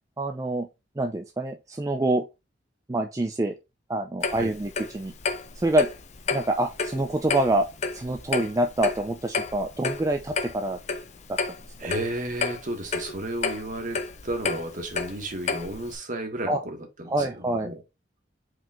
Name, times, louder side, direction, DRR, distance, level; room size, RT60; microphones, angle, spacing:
voice 1, 0.2-0.7 1.0-2.2 2.9-3.6 3.9-5.1 5.6-5.9 6.3-7.7 7.9-10.8 11.8-11.9 16.5-16.6 17.1-17.7, right 1 dB, 20° right, 0.4 m, -26 dB
Clock, 4.2-15.9, left 4 dB, 40° left, 0.6 m, -31 dB
voice 2, 11.8-17.8, right 1 dB, 45° right, 1.1 m, -33 dB
4.9 x 2.9 x 3.6 m
head